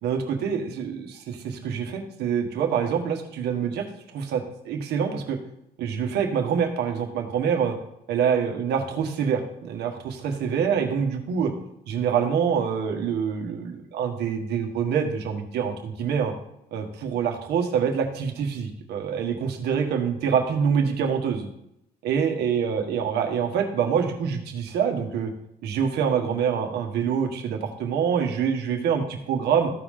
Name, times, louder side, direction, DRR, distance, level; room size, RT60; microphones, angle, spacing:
voice 1, 0.0-3.9 4.1-5.4 5.8-7.7 8.1-11.5 11.9-16.3 16.7-21.5 22.0-25.3 25.6-29.7, right 7 dB, 75° right, 3 dB, 1.6 m, -25 dB
14.0 x 4.9 x 3.7 m, 0.80 s
cardioid pair, 110°, 17 cm